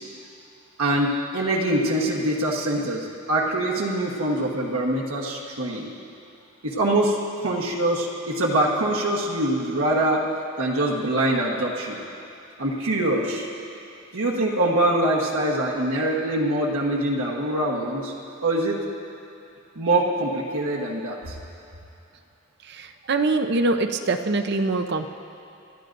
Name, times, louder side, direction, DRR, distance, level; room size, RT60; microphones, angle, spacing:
voice 1, 0.8-5.9 6.6-10.3 10.6-12.0 12.6-13.5 14.1-18.1 18.4-18.8 19.8-21.4, right 1 dB, 75° right, -3 dB, 1.3 m, -24 dB
voice 2, 22.7-25.1, right 3 dB, 50° right, 7 dB, 0.6 m, -24 dB
27.5 x 13.0 x 2.6 m, 2.6 s
head